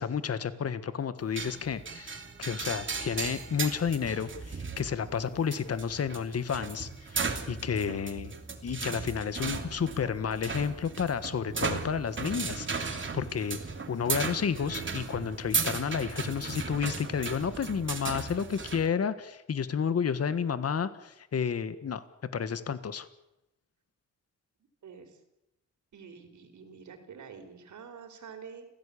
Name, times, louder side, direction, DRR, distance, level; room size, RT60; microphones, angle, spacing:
voice 1, 0.0-8.3 8.6-13.6 13.9-22.0 22.3-23.1, left 7 dB, 55° left, 13 dB, 1.7 m, -31 dB
sound 1, 1.4-18.9, right 5 dB, 40° right, 3.0 m, -36 dB
voice 2, 24.8-25.2 25.9-28.7, right 6 dB, 80° right, 5 dB, 4.6 m, -48 dB
29.5 x 16.5 x 8.6 m, 0.88 s
cardioid pair, 105°, 29 cm